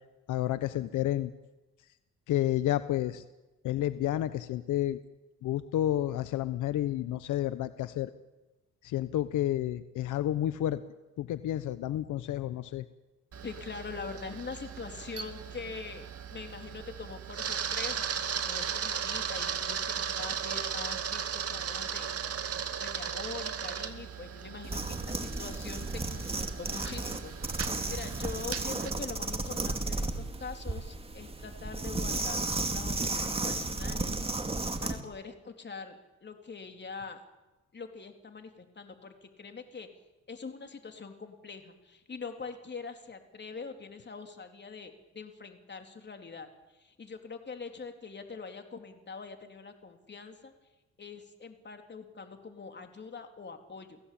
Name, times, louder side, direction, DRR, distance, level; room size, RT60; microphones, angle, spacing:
voice 1, 0.3-1.3 2.3-3.2 3.6-5.0 5.4-8.1 8.8-10.8 11.2-12.8, left 13 dB, 80° left, 13 dB, 1.0 m, -30 dB
Camera, 13.3-28.9, right 7 dB, 50° right, 2.1 m, -36 dB
voice 2, 13.4-22.1 22.8-34.2 34.8-37.2 37.7-39.9 40.3-50.5 51.0-54.0, left 5 dB, 35° left, 5 dB, 3.8 m, -43 dB
sound 1, 24.6-35.0, right 2 dB, 20° right, 2.6 m, -34 dB
30.0 x 17.0 x 8.8 m, 1.1 s
cardioid pair, 90°, 30 cm